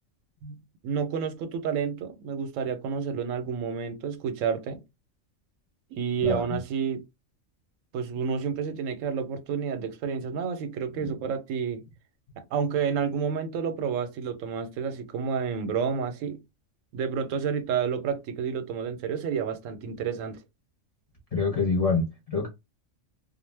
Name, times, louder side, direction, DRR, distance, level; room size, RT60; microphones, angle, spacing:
voice 1, 0.4-4.8 5.9-7.0 7.9-11.8 12.4-16.4 16.9-20.4, right 6 dB, 90° right, 1.0 m, -30 dB
voice 2, 21.3-22.5, left 4 dB, 35° left, 0.7 m, -26 dB
2.4 x 2.1 x 3.2 m
omnidirectional pair, 1.3 m